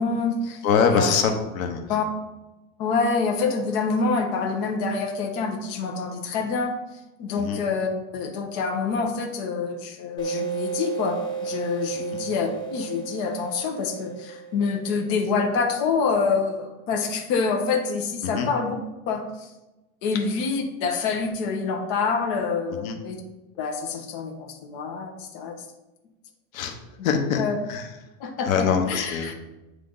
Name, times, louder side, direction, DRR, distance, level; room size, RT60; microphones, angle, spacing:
voice 1, 0.0-0.6 0.9-1.1 1.9-2.1 2.8-6.8 7.2-18.8 19.1-19.5 20.0-23.2 23.6-25.6 27.0-27.1 27.4-27.6 28.2-29.3, left 4 dB, 45° left, 2 dB, 0.9 m, -26 dB
voice 2, 0.6-1.9 7.4-7.6 12.0-12.2 18.2-18.5 22.8-23.0 26.5-26.8 27.0-27.4 27.7-27.9 28.4-29.3, left 6 dB, 85° left, 5 dB, 1.0 m, -24 dB
sound 1, 10.2-15.5, right 7 dB, 10° left, 0.5 m, -33 dB
8.7 x 3.3 x 3.8 m, 1.0 s
supercardioid pair, 170°, 40 cm